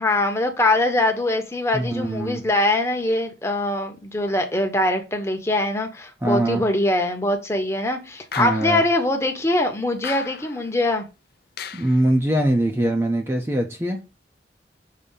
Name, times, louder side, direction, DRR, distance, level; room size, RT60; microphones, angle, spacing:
voice 1, 0.0-11.0, left 1 dB, 15° left, 1.0 m, -22 dB
voice 2, 1.7-2.4 6.2-6.6 8.4-8.8 11.7-14.0, right 1 dB, 15° right, 0.7 m, -22 dB
sound 1, 8.3-9.0 10.0-10.7 11.6-12.1, left 6 dB, 55° left, 0.6 m, -35 dB
6.7 x 2.8 x 5.5 m
head